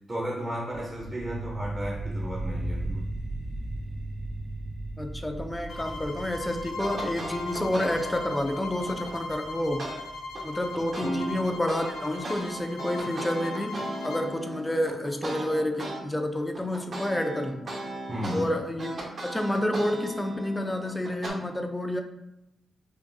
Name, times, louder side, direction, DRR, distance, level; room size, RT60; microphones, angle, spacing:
voice 1, 0.1-3.1 11.0-11.4 18.1-18.6, right 1 dB, 20° right, -4 dB, 0.7 m, -33 dB
sound 1, 0.7-11.7, right 1 dB, 80° right, 1.4 m, -37 dB
voice 2, 5.0-9.9 10.4-17.7 18.3-22.0, left 1 dB, 10° left, 5 dB, 0.4 m, -29 dB
sound 2, 5.7-14.3, left 3 dB, 75° left, 0.5 m, -39 dB
sound 3, 6.8-9.1 9.8-10.0 10.3-16.0 16.3-21.3, right 1 dB, 50° right, 1.0 m, -37 dB
5.2 x 2.5 x 2.6 m, 0.89 s
cardioid pair, 105°, 0 cm